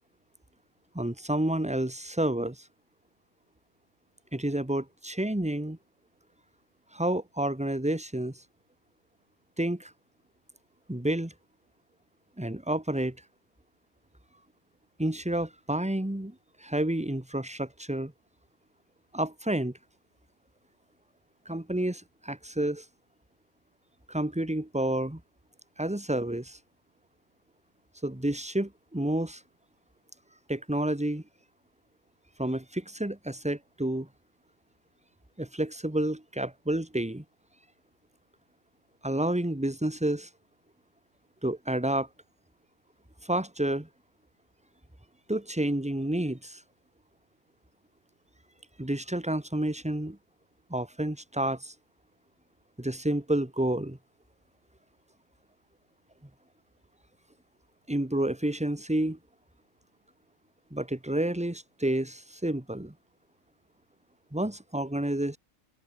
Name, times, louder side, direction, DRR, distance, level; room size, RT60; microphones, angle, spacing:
voice 1, 0.9-2.6 4.3-5.8 6.9-8.3 9.6-9.9 10.9-11.3 12.4-13.1 15.0-16.3 16.6-18.1 19.1-19.7 21.4-22.8 24.1-25.2 25.8-26.6 28.0-29.4 30.5-31.2 32.4-34.1 35.4-37.2 39.0-40.3 41.4-42.1 43.3-43.9 45.3-46.6 48.8-50.2 50.7-51.7 52.8-54.0 57.9-59.2 60.7-62.9 64.3-65.4, right 1 dB, 5° right, 1.7 m, -29 dB
omnidirectional pair, 1.5 m